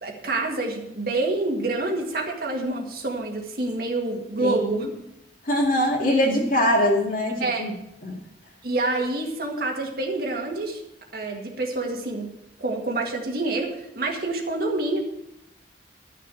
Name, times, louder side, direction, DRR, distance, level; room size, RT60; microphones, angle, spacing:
voice 1, 0.0-4.9 7.4-7.6 8.6-10.8 11.1-12.3 12.6-15.0, right 2 dB, 55° right, 1 dB, 1.9 m, -27 dB
voice 2, 4.4-4.8 5.4-7.7 8.0-8.2, left 1 dB, 50° left, -1 dB, 2.1 m, -22 dB
12.0 x 6.5 x 7.6 m, 0.83 s
head